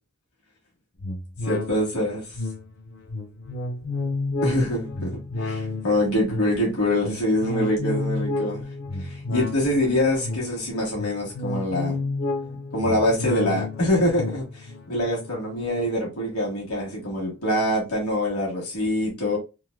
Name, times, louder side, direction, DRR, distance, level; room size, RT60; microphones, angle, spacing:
sound 1, 1.0-16.7 17.2-17.3, left 3 dB, 50° left, 0.5 m, -31 dB
voice 1, 1.4-2.2 4.4-8.6 9.0-12.0 12.7-19.4, left 1 dB, 80° left, 1.6 m, -25 dB
3.9 x 2.5 x 2.4 m
head